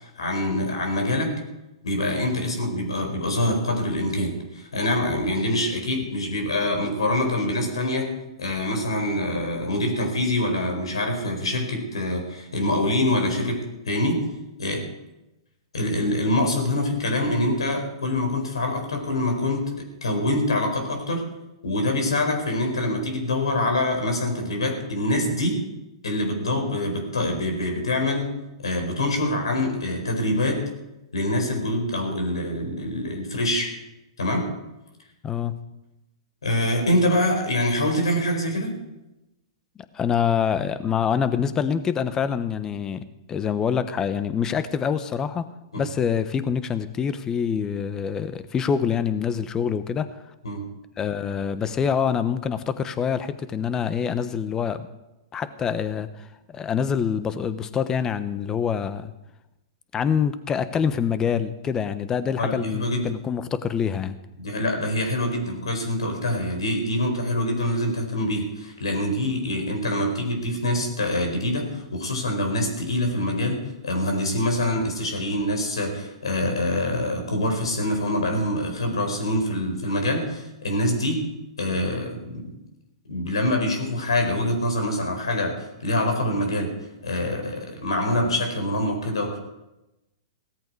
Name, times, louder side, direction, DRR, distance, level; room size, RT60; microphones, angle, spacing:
voice 1, 0.0-1.4 1.8-8.1 8.4-13.6 13.9-14.2 14.6-14.9 15.7-19.7 20.0-21.3 21.6-25.6 26.0-28.3 28.6-30.7 31.1-33.7 34.2-34.5 36.4-38.7 45.7-45.8 50.4-50.6 62.4-63.0 64.4-81.2 81.6-82.5 83.1-86.7 87.0-89.4, left 1 dB, 80° left, 4 dB, 4.5 m, -25 dB
voice 2, 35.2-35.6 39.9-45.5 45.8-50.1 51.0-54.9 55.3-59.1 59.9-64.2, left 7 dB, 20° left, 13 dB, 1.1 m, -25 dB
17.0 x 14.0 x 4.8 m, 0.97 s
hypercardioid pair, 115°, 3 cm